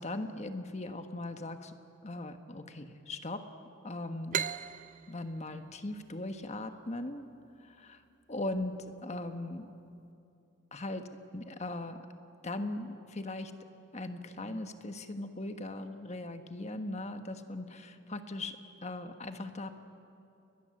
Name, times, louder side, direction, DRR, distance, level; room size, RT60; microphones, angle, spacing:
voice 1, 0.0-1.7 2.0-3.4 3.8-4.4 5.1-7.3 7.6-8.0 8.3-8.7 9.0-9.7 10.7-11.1 11.3-12.0 12.4-13.5 13.9-18.6 18.8-19.7, left 2 dB, 35° left, 7 dB, 1.4 m, -39 dB
sound 1, 4.3-7.7, right 8 dB, 40° right, 0.6 m, -39 dB
30.0 x 21.5 x 7.8 m, 2.6 s
head